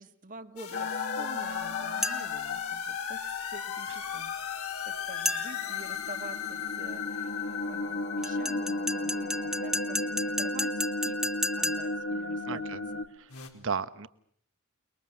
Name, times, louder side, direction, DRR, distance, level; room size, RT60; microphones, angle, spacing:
voice 1, 0.0-11.2 11.6-13.1, right 3 dB, 40° right, 8 dB, 1.6 m, -48 dB
sound 1, 0.6-8.4 13.3-13.5, left 5 dB, 85° left, 4.4 m, -42 dB
sound 2, 0.7-13.0, left 3 dB, 55° left, 2.0 m, -34 dB
sound 3, 2.0-2.5 5.3-5.8 8.2-12.1, left 1 dB, ahead, 1.5 m, -33 dB
voice 2, 12.5-12.9 13.2-14.1, right 5 dB, 60° right, 13 dB, 1.2 m, -35 dB
29.0 x 21.5 x 7.6 m, 0.66 s
head